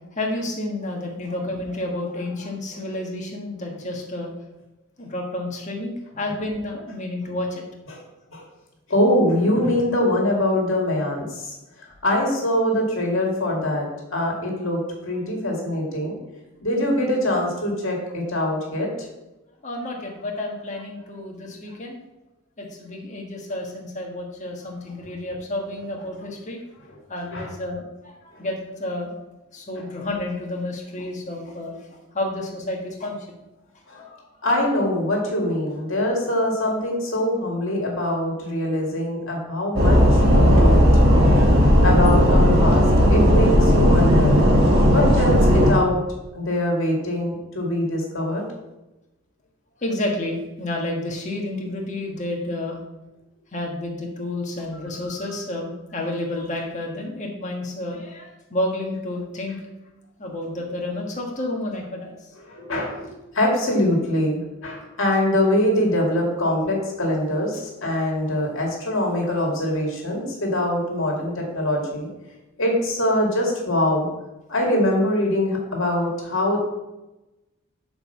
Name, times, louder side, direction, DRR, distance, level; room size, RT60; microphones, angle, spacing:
voice 1, 0.1-4.3 5.0-7.6 19.6-22.0 22.6-26.6 27.1-29.1 29.5-33.2 34.0-34.3 40.4-40.5 41.3-41.4 49.8-52.8 53.5-59.6 60.2-62.1, left 1 dB, 35° left, 0 dB, 1.4 m, -30 dB
voice 2, 8.9-11.2 12.0-14.8 15.0-16.1 16.6-18.9 27.3-27.5 33.9-34.0 34.4-40.0 40.3-41.6 41.8-42.8 43.1-44.4 44.9-46.0 46.3-48.4 62.5-72.1 72.6-74.1 74.5-76.6, left 1 dB, 60° left, 0 dB, 2.2 m, -23 dB
sound 1, 39.8-45.7, equal, 45° right, 1.6 m, -15 dB
6.4 x 4.8 x 6.8 m, 0.99 s
head